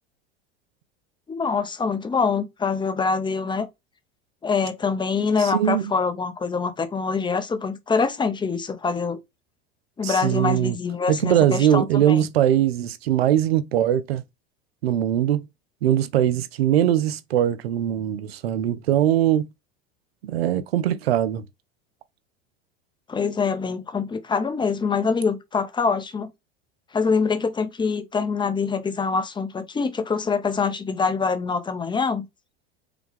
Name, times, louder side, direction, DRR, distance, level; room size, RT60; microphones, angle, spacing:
voice 1, 1.3-3.7 4.4-9.2 10.0-12.2 23.1-26.3 26.9-32.3, left 5 dB, 15° left, 0.8 m, -24 dB
voice 2, 5.4-5.9 10.0-10.8 11.1-14.2 14.8-15.5 15.8-19.5 20.2-21.4, right 11 dB, 90° right, 0.6 m, -21 dB
5.0 x 2.3 x 3.4 m
hypercardioid pair, 95°, 30 cm